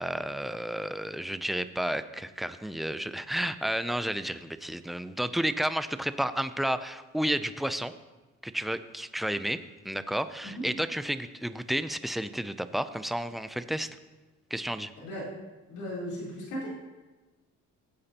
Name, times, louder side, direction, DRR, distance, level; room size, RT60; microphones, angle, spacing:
voice 1, 0.0-7.9 8.4-9.6 9.8-13.9 14.5-14.9, right 1 dB, ahead, 12 dB, 0.4 m, -31 dB
voice 2, 15.0-15.3 15.7-16.7, equal, 80° left, -7 dB, 3.8 m, -36 dB
15.5 x 8.6 x 2.9 m, 1.2 s
cardioid pair, 90°, 30 cm